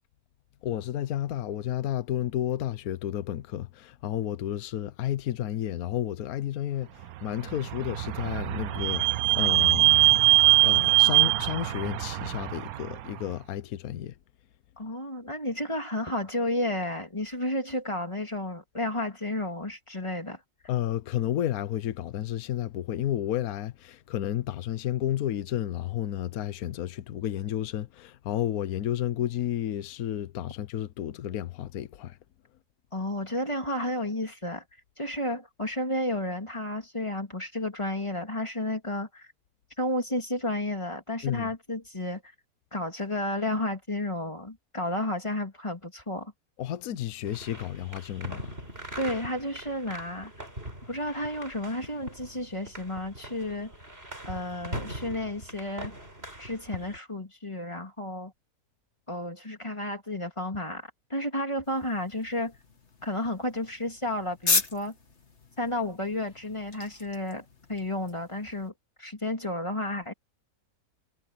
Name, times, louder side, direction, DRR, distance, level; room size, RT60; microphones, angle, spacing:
voice 1, 0.6-14.1 20.7-32.2 41.2-41.5 46.6-48.5, left 11 dB, 70° left, 1.3 m, -32 dB
Vehicle / Squeak, 7.4-13.0, right 17 dB, 75° right, 1.1 m, -22 dB
voice 2, 14.8-20.4 32.9-34.6 35.0-39.3 39.8-42.2 42.7-46.3 49.0-50.3 50.9-53.7 54.2-56.0 56.4-58.3 59.1-62.5 63.0-64.9 65.6-68.7 69.0-70.1, left 1 dB, 20° left, 3.1 m, -32 dB
sound 1, 47.3-57.0, right 1 dB, 40° right, 7.3 m, -42 dB
sound 2, 61.6-68.7, left 4 dB, 45° left, 2.3 m, -35 dB
omnidirectional pair, 1.6 m